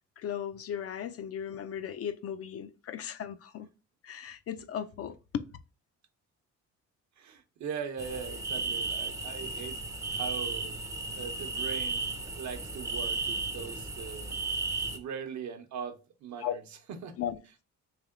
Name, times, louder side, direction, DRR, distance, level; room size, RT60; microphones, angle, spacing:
voice 1, 0.2-3.7 4.0-5.5 16.4-16.5 17.2-17.4, left 9 dB, 50° left, 0.4 m, -36 dB
voice 2, 7.2-9.8 10.1-10.8 11.1-14.4 14.9-16.6 16.9-17.1, right 7 dB, 65° right, 0.8 m, -40 dB
sound 1, 8.0-15.0, right 3 dB, 10° right, 0.5 m, -34 dB
3.3 x 2.8 x 3.7 m
cardioid pair, 90°, 30 cm